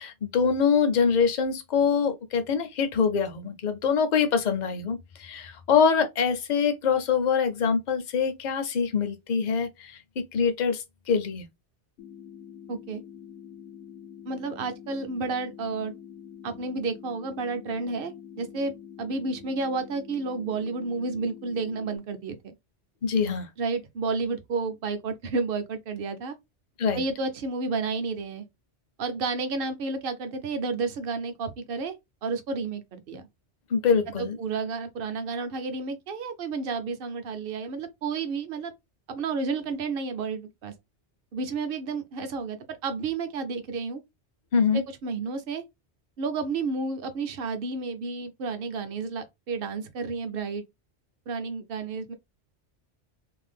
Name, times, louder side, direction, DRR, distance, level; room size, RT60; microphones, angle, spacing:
voice 1, 0.0-11.5 23.0-23.5 26.8-27.0 33.7-34.4 44.5-44.8, left 6 dB, 55° left, 0.6 m, -24 dB
sound 1, 12.0-22.0, left 8 dB, 80° left, 0.9 m, -46 dB
voice 2, 12.7-13.0 14.3-16.0 16.4-18.7 19.0-22.5 23.6-26.4 26.9-28.4 29.0-31.9 32.2-33.2 34.2-38.7 39.1-40.7 41.3-44.0 44.7-45.6 46.2-50.6 51.3-52.1, right 4 dB, 60° right, 0.7 m, -31 dB
2.6 x 2.2 x 3.3 m
omnidirectional pair, 1.2 m